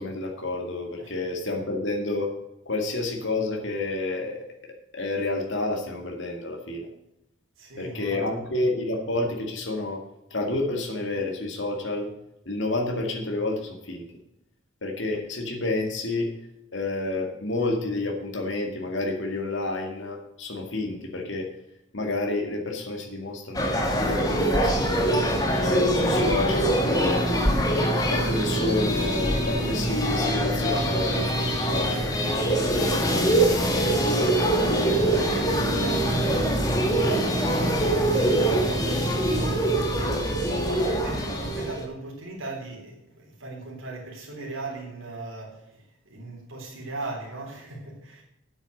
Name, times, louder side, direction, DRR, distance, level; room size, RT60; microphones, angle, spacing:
voice 1, 0.0-2.3 2.7-6.9 7.8-10.0 10.3-12.1 12.5-14.1 14.8-16.3 16.7-21.5 21.9-27.3 28.1-33.8, left 2 dB, 65° left, 2 dB, 2.2 m, -30 dB
voice 2, 7.6-8.4 34.4-48.2, right 2 dB, 85° right, -3 dB, 3.6 m, -38 dB
sound 1, 23.5-41.9, right 1 dB, 20° left, 1.6 m, -23 dB
9.3 x 8.4 x 6.5 m, 0.84 s
head